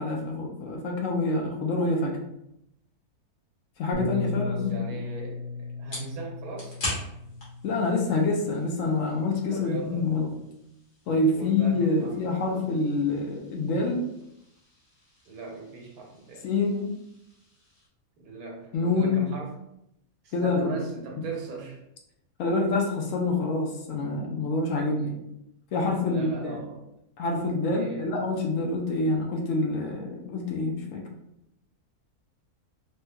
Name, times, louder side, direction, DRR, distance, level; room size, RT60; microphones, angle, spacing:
voice 1, 0.0-2.2 3.8-5.0 7.6-10.3 11.1-14.1 16.4-16.9 18.7-19.2 20.3-20.8 22.4-25.1 25.7-26.6 27.2-31.0, left 3 dB, 70° left, 0 dB, 0.9 m, -26 dB
Bass guitar, 3.9-8.4 9.2-10.2, left 2 dB, 60° right, 0.7 m, -36 dB
voice 2, 4.4-6.8 9.5-10.2 11.3-12.2 15.3-16.5 18.2-19.5 20.2-21.8 26.0-26.9 27.7-28.1, right 3 dB, 90° right, 0 dB, 1.3 m, -39 dB
sound 1, 4.7-17.9, left 1 dB, 50° left, 1.4 m, -43 dB
3.1 x 3.0 x 2.2 m, 0.82 s
omnidirectional pair, 1.6 m